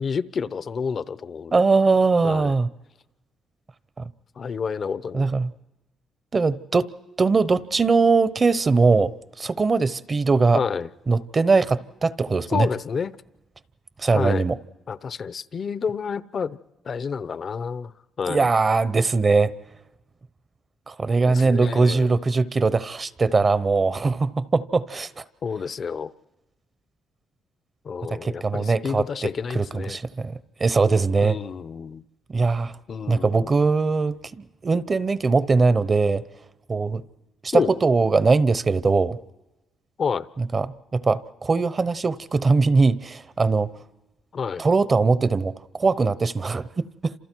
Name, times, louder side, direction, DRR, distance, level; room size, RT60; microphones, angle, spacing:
voice 1, 0.0-1.6 2.2-2.5 4.4-5.3 10.5-10.9 12.5-13.1 14.1-14.4 14.9-16.6 16.8-17.9 18.2-18.5 21.3-22.1 25.4-26.1 27.8-30.0 31.2-32.0 32.9-33.5 37.5-37.7 40.0-40.3 44.3-44.6, left 6 dB, 50° left, 16 dB, 0.7 m, -29 dB
voice 2, 1.5-2.7 4.0-4.1 5.1-5.5 6.3-6.9 7.2-10.6 11.1-12.7 14.0-14.6 18.3-19.5 20.9-25.2 28.1-31.4 32.3-32.8 33.1-36.2 36.7-37.0 37.4-39.2 40.4-43.7 44.6-47.1, right 4 dB, 35° right, 16 dB, 0.9 m, -21 dB
29.5 x 27.5 x 4.6 m, 1.0 s
cardioid pair, 90°, 0 cm